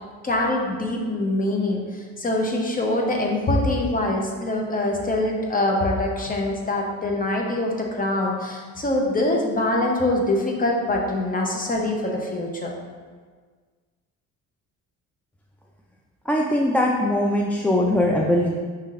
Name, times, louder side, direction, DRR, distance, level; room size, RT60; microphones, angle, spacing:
voice 1, 0.2-12.8, left 1 dB, 25° left, 0 dB, 0.8 m, -24 dB
voice 2, 16.3-18.6, left 1 dB, 5° left, -1 dB, 0.3 m, -21 dB
5.3 x 3.8 x 2.5 m, 1.5 s
cardioid pair, 80°, 33 cm